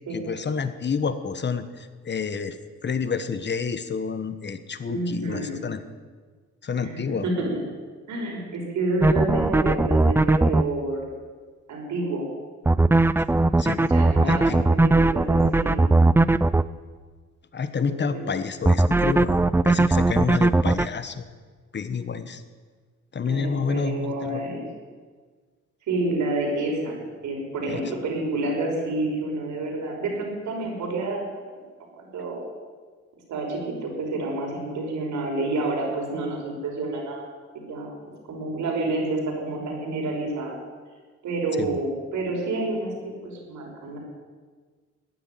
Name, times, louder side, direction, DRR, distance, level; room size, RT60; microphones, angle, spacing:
voice 1, 0.1-2.6 2.8-5.8 6.6-7.3 13.6-13.9 14.2-14.6 17.5-21.3 21.7-22.4 23.1-24.4 27.7-27.9 41.6-41.7, left 5 dB, 35° left, 11 dB, 1.3 m, -29 dB
voice 2, 4.9-5.6 6.8-7.5 8.1-11.0 11.7-12.3 13.9-15.9 17.8-18.3 23.2-24.7 25.9-31.4 32.0-32.4 33.3-37.3 37.5-37.9 38.3-40.6 41.2-44.0, right 2 dB, 75° right, -1 dB, 5.6 m, -29 dB
sound 1, 9.0-10.6 12.7-16.6 18.7-20.9, right 2 dB, 10° right, 0.4 m, -18 dB
15.0 x 10.0 x 9.2 m, 1.5 s
cardioid pair, 90°, 30 cm